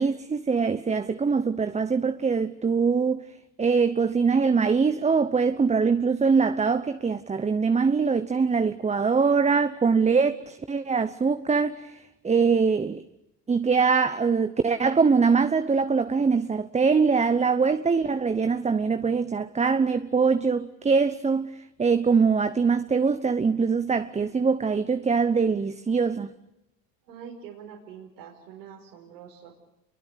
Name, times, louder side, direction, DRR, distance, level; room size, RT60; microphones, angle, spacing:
voice 1, 0.0-3.2 3.6-13.0 13.5-26.3, right 5 dB, 15° right, 0.9 m, -23 dB
voice 2, 27.1-29.5, right 7 dB, 85° right, 5.5 m, -44 dB
27.5 x 23.5 x 8.3 m
hypercardioid pair, 95°, 48 cm